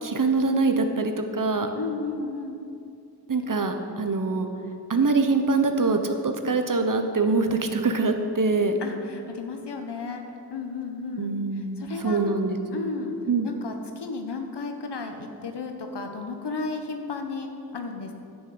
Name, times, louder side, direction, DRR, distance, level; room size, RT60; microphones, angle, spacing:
voice 1, 0.0-1.7 3.3-4.5 4.9-8.8 11.2-12.6 13.3-13.5, right 3 dB, 50° right, 6 dB, 1.2 m, -24 dB
voice 2, 1.7-2.6 8.8-10.2 10.5-12.2 12.7-13.2 13.4-18.1, left 4 dB, 80° left, 4 dB, 1.2 m, -33 dB
10.0 x 6.5 x 7.9 m, 2.6 s
cardioid pair, 50°, 40 cm